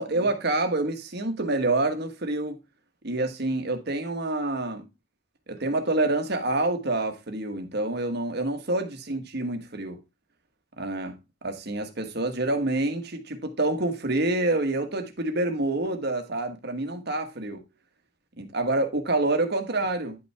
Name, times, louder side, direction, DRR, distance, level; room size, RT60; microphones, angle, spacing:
voice 1, 0.0-2.6 3.0-4.8 5.5-10.0 10.8-11.2 11.4-17.6 18.4-20.2, right 2 dB, 55° right, 1.4 m, -27 dB
10.5 x 5.6 x 3.4 m
head